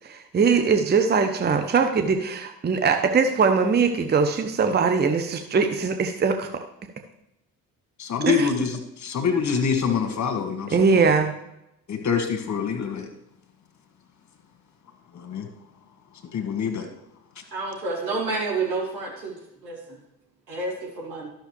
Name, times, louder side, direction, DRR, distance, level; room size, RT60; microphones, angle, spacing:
voice 1, 0.0-6.6 8.2-8.5 10.7-11.3, right 5 dB, 20° right, 0.8 m, -21 dB
voice 2, 8.0-10.9 11.9-13.1 15.1-15.5 16.3-16.9, left 6 dB, 35° left, 1.7 m, -25 dB
voice 3, 17.5-19.3 19.6-19.8 20.5-21.3, right 3 dB, 85° right, 2.8 m, -29 dB
13.0 x 6.4 x 3.2 m
figure-of-eight pair, 45°, 49 cm